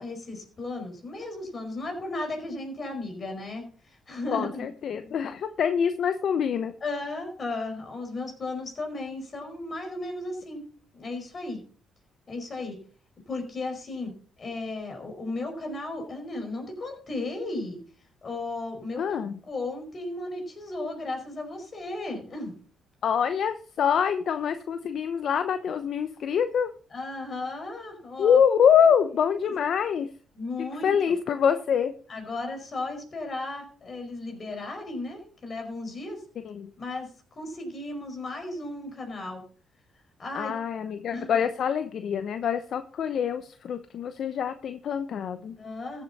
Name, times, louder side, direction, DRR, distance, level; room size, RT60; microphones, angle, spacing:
voice 1, 0.0-4.7 4.9-5.1 6.8-10.6 10.9-11.6 12.3-12.8 13.3-14.1 14.4-17.8 18.2-19.0 19.4-22.6 26.9-28.4 30.3-30.8 32.1-36.2 36.8-37.1 37.3-39.4 40.2-40.5 41.1-41.4 45.6-46.0, left 2 dB, 40° left, 5 dB, 5.1 m, -35 dB
voice 2, 4.3-6.7 19.0-19.4 23.0-26.7 28.2-30.1 30.8-31.9 36.4-36.7 40.3-45.6, left 7 dB, 65° left, 10 dB, 0.8 m, -25 dB
14.5 x 8.2 x 4.1 m, 0.43 s
cardioid pair, 90°, 0 cm